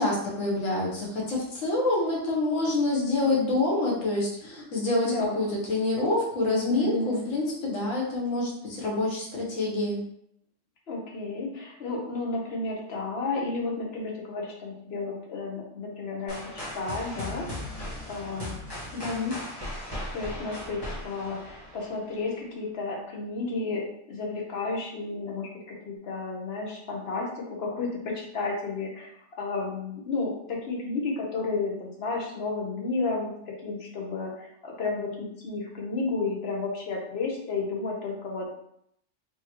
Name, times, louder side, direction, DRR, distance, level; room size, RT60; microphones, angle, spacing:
voice 1, 0.0-10.0 18.9-19.3, left 2 dB, 90° left, -4 dB, 1.4 m, -27 dB
voice 2, 5.0-5.4 6.7-7.3 10.9-16.4 16.7-17.5 18.1-18.6 20.1-29.1 29.4-38.5, left 3 dB, 55° left, -1 dB, 1.1 m, -32 dB
sound 1, 16.3-22.2, left 1 dB, 20° left, 1.1 m, -38 dB
4.6 x 2.9 x 3.0 m, 0.73 s
omnidirectional pair, 1.3 m